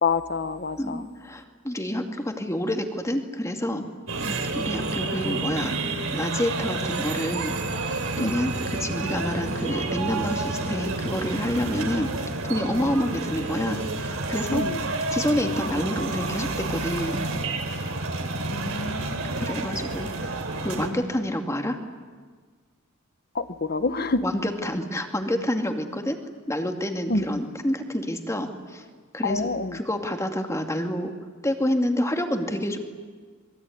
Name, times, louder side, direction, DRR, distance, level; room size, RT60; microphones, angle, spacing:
voice 1, 0.0-1.0 4.2-4.4 8.2-8.4 14.5-14.8 18.4-19.5 23.3-24.2 27.1-27.4 29.2-29.8, left 3 dB, 50° left, 11 dB, 1.4 m, -28 dB
voice 2, 0.8-3.8 4.5-5.8 6.1-7.6 8.2-14.6 15.1-17.3 19.4-21.8 24.2-26.2 26.5-28.8 29.1-29.4 29.7-31.1 31.4-32.8, left 1 dB, 15° left, 5 dB, 2.5 m, -28 dB
sound 1, 4.1-20.9, right 2 dB, 80° right, 3.6 m, -30 dB
26.0 x 22.5 x 9.6 m, 1.5 s
head